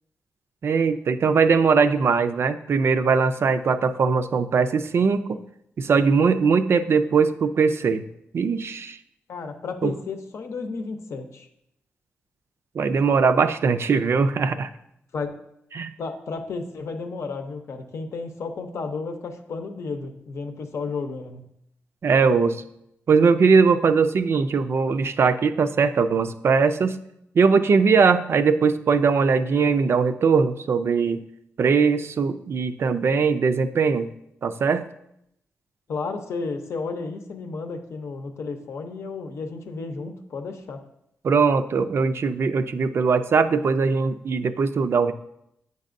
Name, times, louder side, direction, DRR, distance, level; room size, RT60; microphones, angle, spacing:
voice 1, 0.6-5.4 5.8-8.0 8.3-9.0 9.8-9.9 12.8-14.7 15.7-15.9 22.0-22.6 23.1-27.0 27.4-31.2 31.6-34.1 34.4-34.9 41.2-45.1, right 5 dB, 60° right, 11 dB, 0.4 m, -20 dB
voice 2, 9.3-11.5 15.1-15.3 16.0-21.5 35.9-40.8, left 4 dB, 75° left, 5 dB, 0.7 m, -32 dB
8.2 x 5.3 x 2.5 m, 0.78 s
cardioid pair, 65°, 5 cm